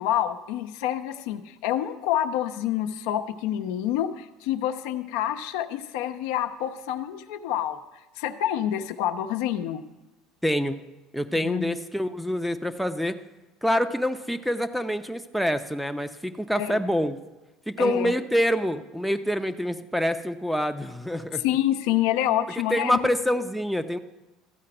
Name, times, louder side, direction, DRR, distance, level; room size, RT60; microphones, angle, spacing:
voice 1, 0.0-7.8 8.2-9.8 11.4-11.8 16.5-16.8 17.8-18.1 21.4-23.1, left 11 dB, 80° left, 6 dB, 0.8 m, -27 dB
voice 2, 10.4-10.8 11.1-13.2 13.6-17.2 17.7-21.4 22.7-24.0, equal, ahead, 10 dB, 0.6 m, -26 dB
13.0 x 5.0 x 8.7 m, 1.1 s
cardioid pair, 130°, 0 cm